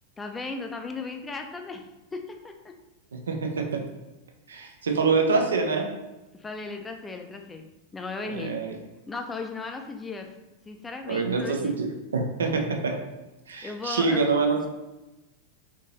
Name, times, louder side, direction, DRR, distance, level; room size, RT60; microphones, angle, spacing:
voice 1, 0.2-1.8 2.1-2.5 6.3-7.6 7.9-8.6 9.1-10.3 10.7-11.8 13.6-14.3, left 3 dB, 15° left, 4 dB, 0.4 m, -36 dB
voice 2, 3.1-3.8 4.5-5.9 8.2-8.7 11.1-13.0 13.5-14.7, right 4 dB, 70° right, 2 dB, 0.5 m, -26 dB
3.7 x 2.8 x 2.7 m, 1.0 s
figure-of-eight pair, 90°, 0 cm